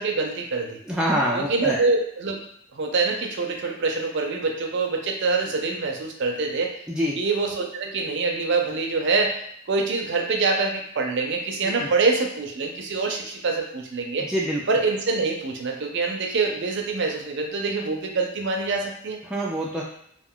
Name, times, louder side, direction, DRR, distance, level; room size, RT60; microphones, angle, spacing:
voice 1, 0.0-0.8 1.3-2.4 2.7-6.8 7.2-9.4 9.7-14.3 14.7-19.2, right 3 dB, 60° right, 2 dB, 0.5 m, -25 dB
voice 2, 0.9-1.8 6.9-7.2 11.6-11.9 14.3-14.6 19.3-19.8, equal, 5° right, -4 dB, 0.3 m, -25 dB
2.4 x 2.3 x 3.6 m, 0.72 s
head